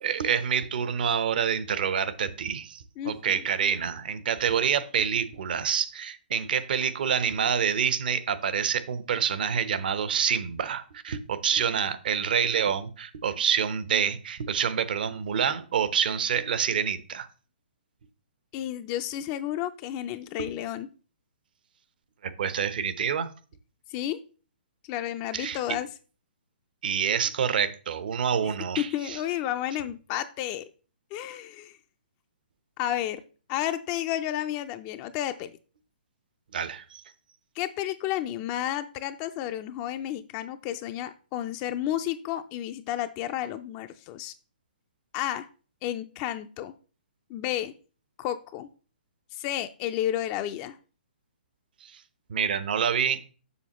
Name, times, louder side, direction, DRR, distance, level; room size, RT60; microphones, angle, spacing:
voice 1, 0.0-17.3 22.2-23.3 25.3-25.6 26.8-29.2 36.5-37.0 51.8-52.0 52.3-53.2, right 7 dB, 60° right, 0.9 m, -27 dB
voice 2, 3.0-3.4 18.5-20.9 23.9-24.2 24.9-25.9 28.4-28.5 28.9-30.7 31.1-31.7 32.8-33.2 33.5-35.5 37.6-44.3 45.1-45.5 45.8-46.7 47.3-47.7 48.2-48.7 49.3-50.8, left 12 dB, 25° left, 0.4 m, -31 dB
7.0 x 6.6 x 3.0 m
hypercardioid pair, 145°, 5 cm